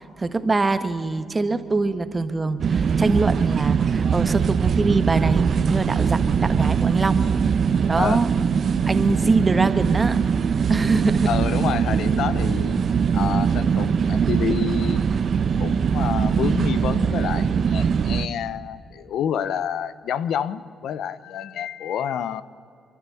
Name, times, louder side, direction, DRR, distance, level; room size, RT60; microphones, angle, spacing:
voice 1, 0.2-7.3 7.9-8.3 8.9-10.2 10.7-11.3, right 3 dB, 25° right, 10 dB, 1.4 m, -23 dB
sound 1, 2.6-18.3, right 6 dB, 55° right, 0.8 m, -21 dB
voice 2, 11.3-15.2 15.6-22.4, left 9 dB, 75° left, 15 dB, 0.7 m, -28 dB
27.5 x 12.0 x 8.5 m, 2.4 s
cardioid pair, 80°, 0 cm